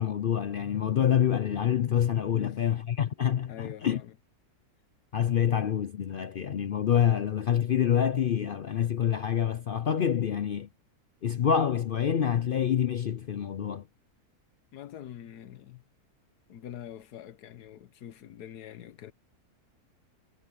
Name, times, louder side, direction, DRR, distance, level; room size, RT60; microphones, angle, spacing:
voice 1, 0.0-4.0 5.1-10.7 11.2-13.9, left 9 dB, 70° left, 0.5 m, -27 dB
voice 2, 2.3-2.6 3.5-4.1 14.7-15.8 16.5-19.1, left 11 dB, 90° left, 1.4 m, -44 dB
omnidirectional pair, 1.6 m